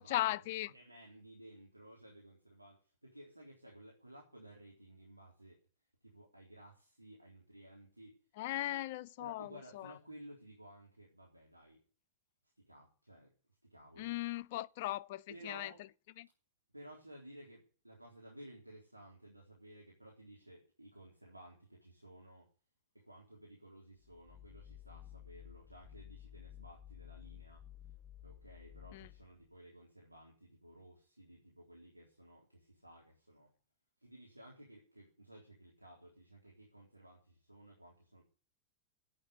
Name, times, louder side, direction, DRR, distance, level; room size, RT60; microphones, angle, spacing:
voice 1, 0.0-0.7 8.4-10.0 14.0-15.9 16.2-16.3 28.9-29.1, left 16 dB, 50° left, 0.6 m, -38 dB
voice 2, 0.7-5.6 6.0-8.2 9.2-11.8 12.7-13.3 13.7-14.1 15.3-15.8 16.7-22.5 22.9-27.6 28.2-33.5 34.0-38.2, right 1 dB, 85° right, 3.9 m, -56 dB
sound 1, 24.0-29.5, left 11 dB, 15° left, 1.5 m, -54 dB
11.0 x 8.9 x 10.0 m
figure-of-eight pair, 90°, 0 cm